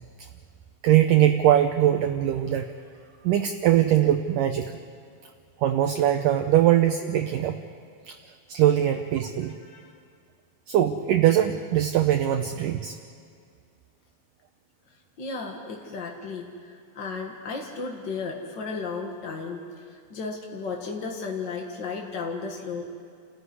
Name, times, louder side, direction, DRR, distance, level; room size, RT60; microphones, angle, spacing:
voice 1, 0.8-2.7 3.2-4.8 5.6-7.6 8.1-8.2 8.5-9.6 10.7-13.0, right 11 dB, 80° right, 6 dB, 2.0 m, -21 dB
voice 2, 15.2-22.8, left 4 dB, 55° left, 1 dB, 1.3 m, -34 dB
29.5 x 15.0 x 9.6 m, 2.3 s
omnidirectional pair, 4.6 m